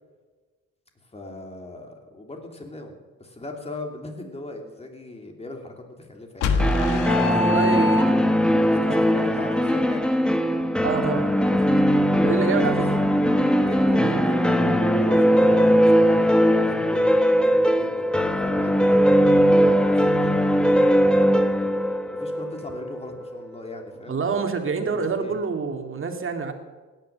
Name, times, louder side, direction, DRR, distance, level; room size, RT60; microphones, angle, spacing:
voice 1, 1.1-7.8 8.1-8.2 8.6-10.1 12.4-13.0 13.6-14.6 14.9-21.4 21.8-24.5 24.8-25.4, left 2 dB, 20° left, 3 dB, 3.1 m, -39 dB
sound 1, 6.4-8.5, left 3 dB, 85° left, 1.5 m, -24 dB
sound 2, 6.6-23.3, equal, 5° left, 1.2 m, -20 dB
voice 2, 7.4-7.9 8.8-9.1 10.8-11.6 12.1-12.8 13.9-14.2 14.6-14.8 24.1-26.5, right 5 dB, 45° right, 5 dB, 2.4 m, -27 dB
17.0 x 10.5 x 7.6 m, 1.3 s
cardioid pair, 90°, 30 cm